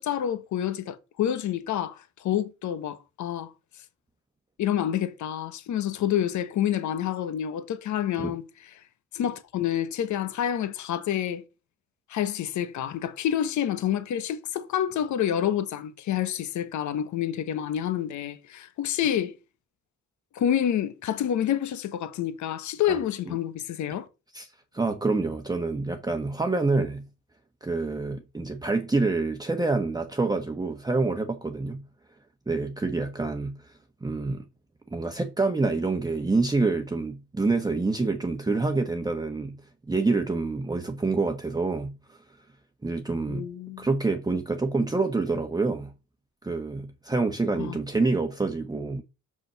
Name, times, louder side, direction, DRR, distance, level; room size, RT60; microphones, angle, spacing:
voice 1, 0.0-3.5 4.6-8.4 9.1-11.4 12.1-19.3 20.3-24.1 43.3-43.8 47.6-47.8, left 10 dB, 70° left, 1.1 m, -28 dB
voice 2, 24.3-27.1 27.6-31.8 32.5-34.4 34.9-39.6 39.9-42.2 42.8-43.5 43.8-45.9 46.4-49.0, right 3 dB, 15° right, 1.0 m, -27 dB
5.9 x 5.1 x 6.7 m
cardioid pair, 90°, 30 cm